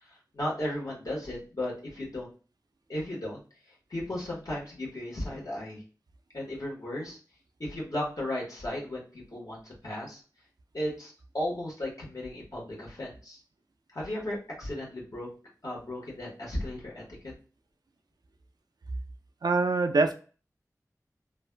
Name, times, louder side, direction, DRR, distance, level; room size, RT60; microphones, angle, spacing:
voice 1, 0.0-2.3 2.9-3.4 3.9-5.8 6.3-7.2 7.6-10.2 10.7-13.4 13.9-15.3 15.6-17.2, left 1 dB, 65° left, -4 dB, 1.3 m, -35 dB
voice 2, 19.4-20.1, right 3 dB, 80° right, 7 dB, 0.4 m, -24 dB
3.2 x 2.3 x 2.2 m, 0.37 s
wide cardioid pair, 50°, 7 cm